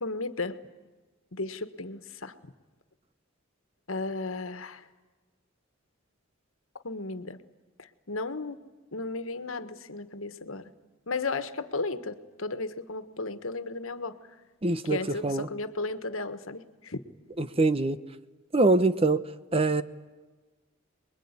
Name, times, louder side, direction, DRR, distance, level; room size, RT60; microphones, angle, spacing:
voice 1, 0.0-0.6 1.3-2.5 3.9-4.9 6.8-7.4 7.8-8.6 8.9-10.7 11.1-14.2 14.8-17.0, left 3 dB, 80° left, 11 dB, 1.5 m, -34 dB
voice 2, 14.6-15.5 17.4-18.0 18.5-19.2 19.5-19.8, right 2 dB, 30° right, 13 dB, 0.9 m, -24 dB
27.5 x 22.0 x 9.8 m, 1.3 s
head